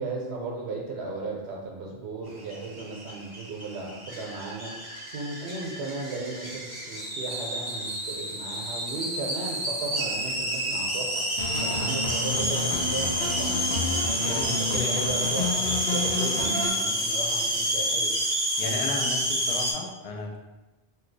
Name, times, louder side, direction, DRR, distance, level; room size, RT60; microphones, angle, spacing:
voice 1, 0.0-18.4, right 3 dB, 90° right, -1 dB, 0.8 m, -36 dB
sound 1, 2.4-19.7, equal, 25° right, 0.7 m, -29 dB
sound 2, 11.4-16.7, left 3 dB, 85° left, 0.9 m, -31 dB
voice 2, 14.2-15.2 18.6-20.4, left 3 dB, 50° left, 1 dB, 0.4 m, -34 dB
2.6 x 2.2 x 3.8 m, 1.1 s
omnidirectional pair, 1.1 m